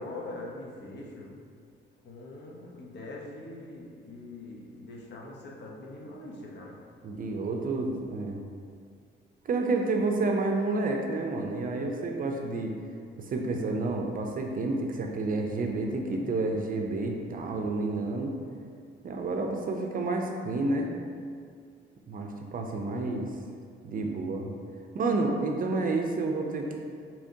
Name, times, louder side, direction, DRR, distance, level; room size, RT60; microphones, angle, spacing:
voice 1, 0.0-1.4 2.0-6.8, left 2 dB, 60° left, -3 dB, 0.8 m, -42 dB
voice 2, 7.0-8.4 9.4-12.7 13.2-18.3 19.0-20.9 22.1-23.3 23.8-24.5 24.9-26.8, right 3 dB, 45° right, 2 dB, 0.5 m, -30 dB
4.8 x 2.9 x 2.7 m, 2.2 s
cardioid pair, 90°, 20 cm